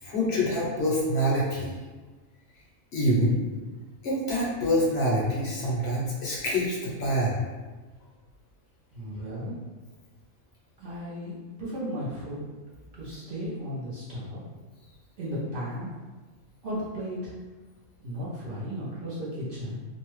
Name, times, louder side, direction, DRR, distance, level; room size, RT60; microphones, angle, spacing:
voice 1, 0.0-1.7 2.9-3.4 4.0-7.4, equal, 60° left, -5 dB, 0.8 m, -26 dB
voice 2, 8.9-9.6 10.8-12.4 12.9-14.4 15.2-15.9 16.6-17.4 18.0-19.8, equal, 55° right, -8 dB, 0.7 m, -35 dB
2.6 x 2.1 x 3.0 m, 1.3 s
omnidirectional pair, 1.3 m